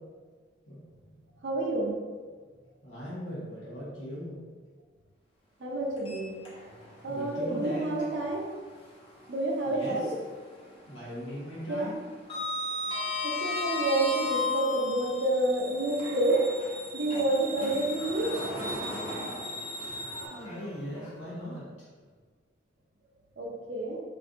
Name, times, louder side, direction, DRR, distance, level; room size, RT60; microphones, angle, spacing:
voice 1, 1.4-1.9 5.6-6.4 7.0-8.5 9.3-10.1 11.7-12.0 13.2-16.4 16.9-18.4 23.4-24.0, right 2 dB, 70° right, -1 dB, 0.7 m, -29 dB
voice 2, 2.8-4.4 7.1-7.9 9.6-10.1 10.9-11.9 20.0-21.7, equal, 85° left, -8 dB, 1.2 m, -39 dB
Sliding door, 6.0-7.0 7.3-7.5 9.2-10.2 10.5-10.9 11.1-15.2 15.9-21.1, left 3 dB, 30° left, 0.7 m, -35 dB
sound 1, 13.2-20.3, right 1 dB, 60° left, 0.9 m, -42 dB
3.1 x 2.6 x 3.7 m, 1.5 s
head